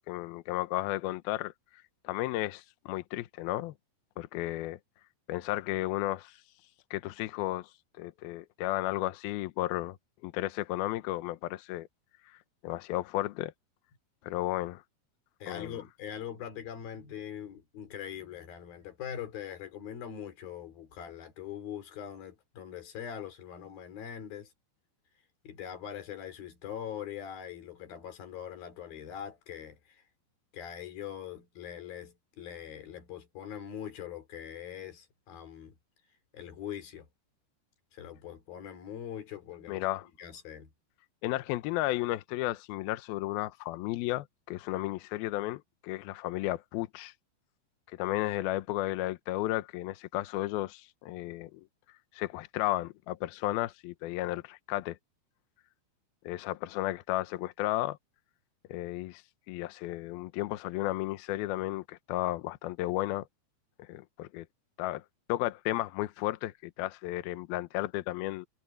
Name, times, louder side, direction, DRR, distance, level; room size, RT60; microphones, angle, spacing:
voice 1, 0.1-1.5 2.0-3.7 4.2-4.8 5.3-6.3 6.9-7.7 8.0-10.0 10.2-11.9 12.6-13.5 14.2-14.8 15.5-15.8 39.7-40.1 41.2-47.1 48.0-51.6 52.1-55.0 56.3-58.0 58.7-59.2 59.5-63.3 63.8-64.5 64.8-65.0 65.3-68.5, left 16 dB, 85° left, 2.2 m, -33 dB
voice 2, 15.4-24.5 25.4-30.0 30.5-35.8 36.3-37.1 37.9-39.9 40.2-40.7, left 9 dB, 55° left, 4.7 m, -42 dB
omnidirectional pair, 5.3 m